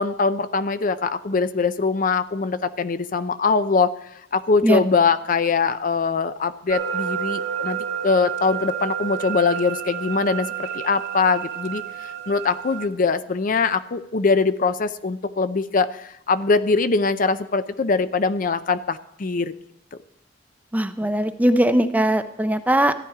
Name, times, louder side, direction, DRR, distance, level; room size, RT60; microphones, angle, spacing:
voice 1, 0.0-3.9 4.3-19.5, left 4 dB, 45° left, 12 dB, 0.5 m, -22 dB
sound 1, 6.7-12.9, right 8 dB, 65° right, 2.1 m, -30 dB
voice 2, 20.7-22.9, right 1 dB, 10° right, 10 dB, 0.5 m, -20 dB
14.0 x 10.0 x 4.8 m, 0.79 s
head